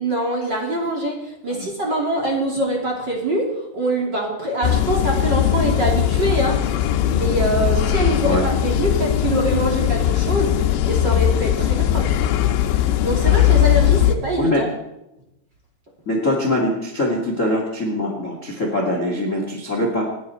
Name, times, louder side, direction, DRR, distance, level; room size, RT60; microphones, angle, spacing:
voice 1, 0.0-6.6 7.0-12.1 12.7-14.7, right 1 dB, 25° right, -1 dB, 2.6 m, -24 dB
sound 1, 4.6-14.2, left 11 dB, 80° left, 3.5 m, -19 dB
voice 2, 16.0-20.1, left 1 dB, 50° left, 1 dB, 0.8 m, -22 dB
28.5 x 10.5 x 4.4 m, 0.88 s
omnidirectional pair, 5.9 m